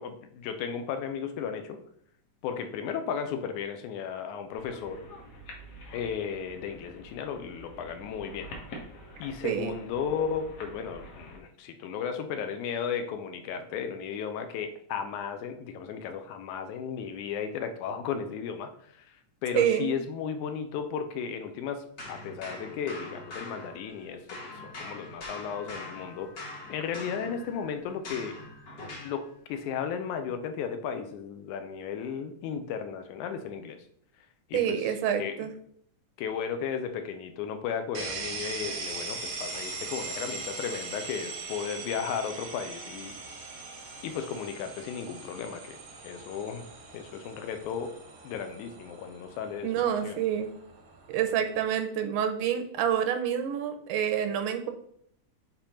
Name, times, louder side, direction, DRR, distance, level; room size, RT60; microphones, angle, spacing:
voice 1, 0.0-1.8 2.4-5.0 5.9-8.5 9.2-19.0 19.4-28.4 28.9-33.8 34.5-34.9 35.2-35.5 36.2-43.2 44.0-45.8 46.0-46.6 46.9-47.9 48.2-50.2, left 7 dB, 80° left, 7 dB, 2.1 m, -35 dB
sound 1, 4.5-11.4, equal, 60° left, 2.3 m, -47 dB
voice 2, 9.4-9.8 19.5-20.0 34.5-35.5 49.6-50.5 51.1-54.7, right 9 dB, 85° right, 7 dB, 2.3 m, -27 dB
sound 2, 22.0-24.0 24.3-29.2, left 2 dB, 45° left, 1.3 m, -43 dB
sound 3, 37.9-51.6, right 3 dB, 60° right, 1.0 m, -41 dB
6.9 x 3.0 x 5.5 m, 0.66 s
omnidirectional pair, 3.6 m